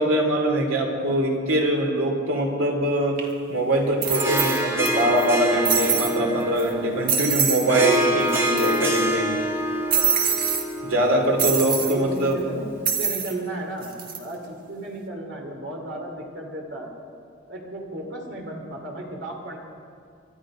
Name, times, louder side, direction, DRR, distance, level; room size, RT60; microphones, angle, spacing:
voice 1, 0.0-3.2 3.5-9.3 10.8-12.4, right 1 dB, 85° right, 1 dB, 2.8 m, -23 dB
sound 1, 3.2-3.3 4.0-4.9 5.2-5.3 5.6-6.2 6.6-6.7 7.1-7.7 7.9-8.0 8.3-9.0 9.9-10.6 11.4-11.9 12.8-13.3 13.8-14.2, right 7 dB, 45° right, 1.6 m, -24 dB
Harp, 4.0-12.7, right 1 dB, 10° right, 1.2 m, -27 dB
voice 2, 11.7-16.9 17.5-19.6, right 1 dB, 60° right, 1 dB, 2.9 m, -34 dB
23.5 x 12.0 x 5.0 m, 2.3 s
head